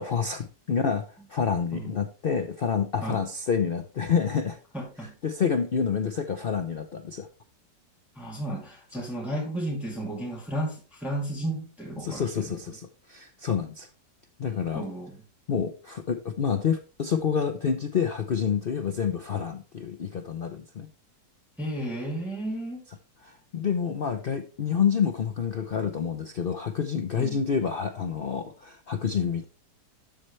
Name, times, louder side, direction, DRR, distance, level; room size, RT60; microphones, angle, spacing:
voice 1, 0.0-4.6 5.2-7.3 12.0-13.9 14.4-14.9 15.5-20.9 23.2-29.4, left 6 dB, 75° left, 7 dB, 0.5 m, -28 dB
voice 2, 4.7-5.2 8.1-12.6 14.7-15.2 21.6-22.8 27.2-27.4, right 1 dB, ahead, -3 dB, 2.4 m, -33 dB
13.0 x 4.3 x 3.2 m, 0.34 s
omnidirectional pair, 1.9 m